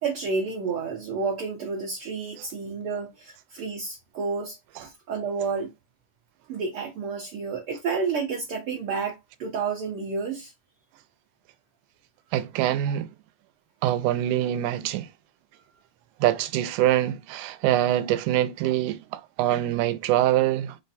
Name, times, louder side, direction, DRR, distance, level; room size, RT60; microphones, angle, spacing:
voice 1, 0.0-5.7 6.5-10.5 12.9-13.0, right 5 dB, 65° right, 1.4 m, -30 dB
voice 2, 12.3-13.1 13.8-15.1 16.2-20.8, right 13 dB, 85° right, 2.0 m, -24 dB
5.1 x 2.1 x 4.0 m
omnidirectional pair, 3.5 m